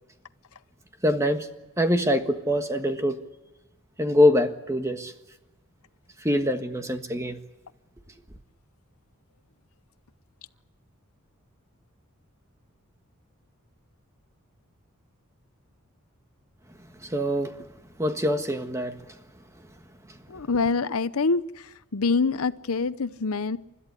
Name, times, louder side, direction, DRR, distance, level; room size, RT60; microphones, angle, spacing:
voice 1, 1.0-1.5 1.8-3.2 4.0-5.1 6.2-7.4 16.9-17.7 18.0-19.2 20.1-20.2, left 1 dB, 15° right, 7 dB, 1.5 m, -24 dB
voice 2, 20.3-23.6, left 4 dB, 85° left, 14 dB, 0.8 m, -26 dB
29.5 x 13.5 x 9.8 m, 1.1 s
head